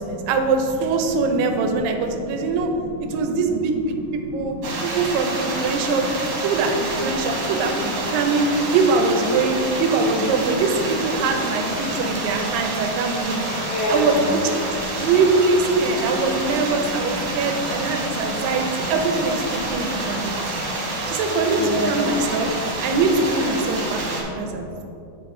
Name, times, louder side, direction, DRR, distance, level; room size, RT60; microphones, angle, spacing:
voice 1, 0.0-2.7 3.1-4.5 4.8-13.5 13.9-14.5 14.9-20.4 21.1-22.5 22.8-24.0 24.3-24.8, right 4 dB, 80° right, 4 dB, 2.3 m, -22 dB
voice 2, 4.2-4.9 5.8-5.9 7.3-7.4 11.8-12.1 12.5-12.7 13.0-14.3 14.9-15.1 16.1-16.2 16.9-18.8 19.5-21.0 21.6-22.1 22.7-22.8 23.6-23.7 23.9-24.6, left 1 dB, 70° left, -3 dB, 2.6 m, -31 dB
sound 1, 4.6-24.2, right 2 dB, 65° right, 2.2 m, -28 dB
7.9 x 5.0 x 3.7 m, 2.7 s
omnidirectional pair, 4.0 m